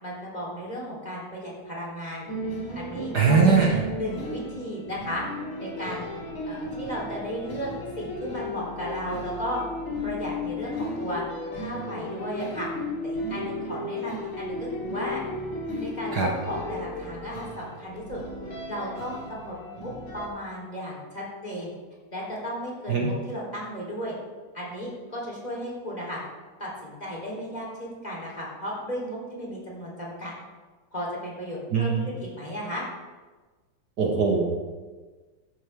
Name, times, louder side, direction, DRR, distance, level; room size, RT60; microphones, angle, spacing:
voice 1, 0.0-2.3 2.7-5.2 5.6-6.1 6.5-7.7 8.0-9.6 10.0-11.2 11.5-12.7 13.0-15.2 15.8-18.2 18.7-21.7 22.1-24.1 24.5-26.2 26.6-30.3 30.9-32.8, equal, 20° left, -4 dB, 3.7 m, -35 dB
sound 1, 2.3-20.3, left 1 dB, 70° left, 3.2 m, -34 dB
voice 2, 3.1-3.8 16.1-16.3 22.9-23.1 31.7-32.1 34.0-34.4, right 5 dB, 55° right, -1 dB, 1.7 m, -21 dB
14.0 x 11.5 x 3.6 m, 1.3 s
omnidirectional pair, 2.4 m